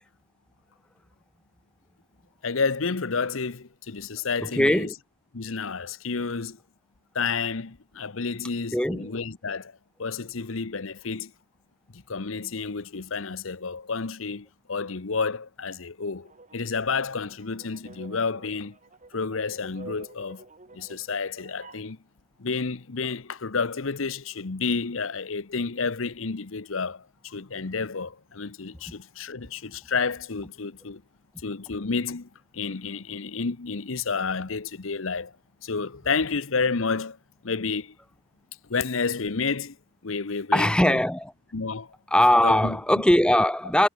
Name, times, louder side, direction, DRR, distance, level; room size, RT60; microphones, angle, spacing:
voice 1, 2.4-4.9 5.3-6.6 7.1-11.3 11.9-18.8 19.1-20.4 20.7-22.0 22.4-31.0 31.4-35.4 35.6-37.2 37.4-38.0 38.7-39.8 40.0-41.0 41.5-41.9 42.4-42.8, left 4 dB, 75° left, 1.0 m, -30 dB
voice 2, 4.4-4.9 8.7-9.2 40.5-41.3 42.1-43.9, left 1 dB, 5° left, 0.8 m, -20 dB
sound 1, 16.2-21.9, right 3 dB, 35° right, 1.5 m, -49 dB
head